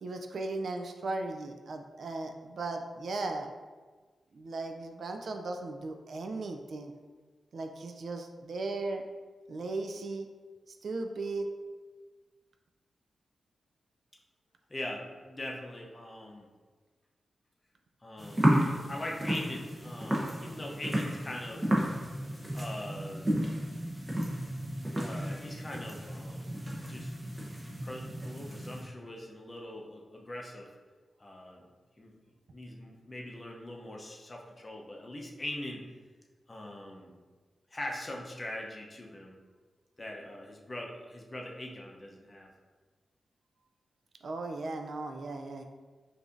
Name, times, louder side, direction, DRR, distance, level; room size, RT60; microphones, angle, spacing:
voice 1, 0.0-3.5 4.3-6.9 7.5-9.0 9.5-10.3 10.8-11.5 44.2-45.6, right 2 dB, 65° right, 4 dB, 0.3 m, -37 dB
voice 2, 14.7-16.5 18.0-21.7 22.5-23.3 25.0-26.5 26.9-27.1 27.8-30.7 31.2-31.6 32.0-32.1 32.5-35.8 36.5-37.1 37.7-39.4 40.0-42.5, left 1 dB, 30° left, 0 dB, 0.6 m, -42 dB
sound 1, 18.2-28.8, equal, 25° right, 0.7 m, -32 dB
4.8 x 2.6 x 2.5 m, 1.4 s
wide cardioid pair, 90°, 0 cm